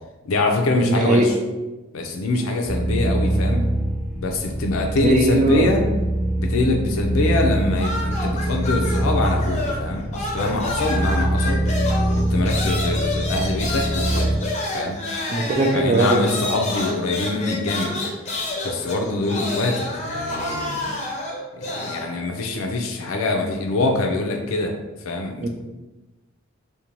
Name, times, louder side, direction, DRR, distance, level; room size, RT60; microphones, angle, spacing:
voice 1, 0.2-1.3 1.9-3.6 4.2-5.8 6.4-11.6 12.2-14.3 14.6-15.0 15.6-17.9 18.6-21.0 21.5-24.8 25.0-25.5, left 2 dB, 90° left, 3 dB, 0.4 m, -24 dB
voice 2, 0.9-1.3 5.0-5.8 15.3-16.2 25.4-25.5, right 2 dB, 35° right, 3 dB, 0.3 m, -19 dB
sound 1, 2.6-14.4, right 1 dB, 20° right, 0.8 m, -24 dB
sound 2, 7.7-9.9 10.1-22.1, left 2 dB, 35° left, 0.5 m, -29 dB
2.6 x 2.1 x 2.9 m, 1.1 s
head